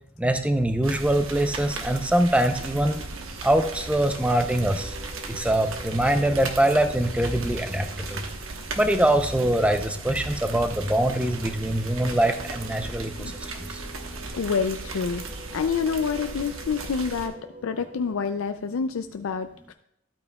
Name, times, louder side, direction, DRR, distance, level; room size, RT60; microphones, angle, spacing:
voice 1, 0.2-3.0 3.4-5.0 5.3-8.3 8.8-13.4 13.7-13.8, right 1 dB, 5° right, 7 dB, 0.6 m, -23 dB
sound 1, 0.8-17.3, right 3 dB, 90° right, 1.2 m, -37 dB
sound 2, 3.1-18.1, right 1 dB, 55° right, 3.0 m, -46 dB
voice 2, 14.3-15.2 15.5-17.4 17.6-19.7, left 5 dB, 85° left, 8 dB, 0.4 m, -27 dB
13.0 x 8.6 x 2.3 m, 0.79 s
head